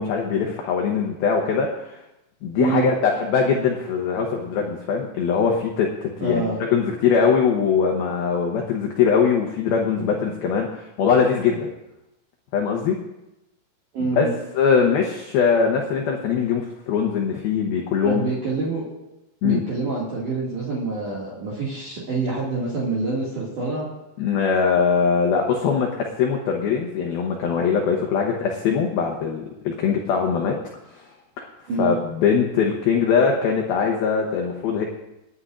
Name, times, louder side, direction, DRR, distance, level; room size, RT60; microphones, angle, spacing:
voice 1, 0.0-2.0 2.4-6.5 6.7-11.7 12.5-13.0 14.1-14.3 14.6-18.2 19.4-19.6 24.2-25.9 26.2-30.6 30.9-31.0 31.4-31.5 31.8-34.8, left 6 dB, 85° left, 0 dB, 2.1 m, -21 dB
voice 2, 2.5-2.9 6.2-6.6 13.9-14.3 18.0-18.8 19.4-23.9 31.7-32.0, right 3 dB, 50° right, -7 dB, 3.0 m, -26 dB
28.5 x 9.7 x 2.5 m, 0.93 s
omnidirectional pair, 5.7 m